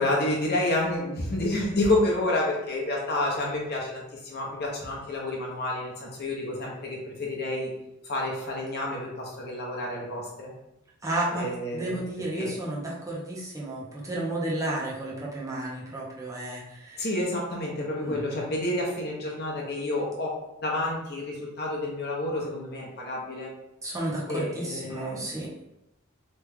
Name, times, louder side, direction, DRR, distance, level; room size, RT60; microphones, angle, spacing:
voice 1, 0.0-7.7 8.0-10.5 11.3-12.0 12.4-12.5 17.0-20.3 20.6-23.5 24.3-25.3, left 1 dB, 50° left, -2 dB, 0.8 m, -29 dB
voice 2, 11.0-11.5 11.7-17.1 18.0-18.2 23.8-25.5, right 1 dB, 15° right, -5 dB, 0.5 m, -32 dB
3.0 x 2.2 x 3.4 m, 0.89 s
head